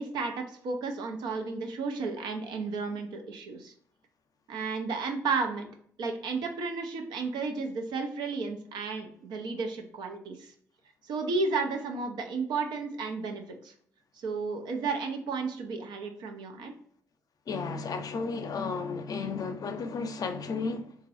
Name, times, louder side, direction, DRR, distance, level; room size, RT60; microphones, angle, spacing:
voice 1, 0.0-3.7 4.5-5.7 6.0-10.5 11.0-13.7 14.2-16.7, right 4 dB, 75° right, 0.5 m, -33 dB
voice 2, 17.5-21.0, left 4 dB, 55° left, 0.5 m, -33 dB
3.0 x 2.5 x 2.4 m
supercardioid pair, 50°, 7 cm